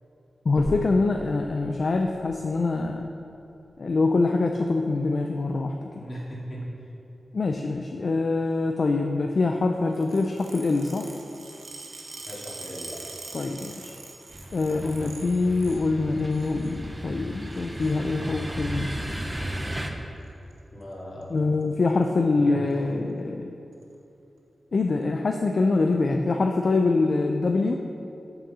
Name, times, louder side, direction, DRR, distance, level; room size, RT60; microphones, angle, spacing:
voice 1, 0.5-3.0 3.8-6.0 7.3-11.1 13.3-14.0 14.5-18.9 21.3-23.5 24.7-27.8, left 3 dB, 55° left, 3 dB, 0.4 m, -24 dB
sound 1, 0.6-4.6 5.1-5.2 5.8-5.9 6.2-6.3 7.2-7.3, left 1 dB, 70° left, 1.1 m, -41 dB
voice 2, 6.0-6.7 12.3-13.0 20.7-21.3 22.4-22.8, equal, 35° left, -5 dB, 2.2 m, -38 dB
sound 2, 9.9-15.8 16.2-16.7 17.5-18.0 19.1-19.3 20.2-20.5 20.8-20.9 21.2-21.3 21.6-22.1 22.7-22.8 23.7-23.8, right 3 dB, 85° right, 1.1 m, -43 dB
sound 3, 14.3-19.9, right 1 dB, 10° right, 0.6 m, -34 dB
6.7 x 6.2 x 6.7 m, 2.8 s
wide cardioid pair, 145°, 0 cm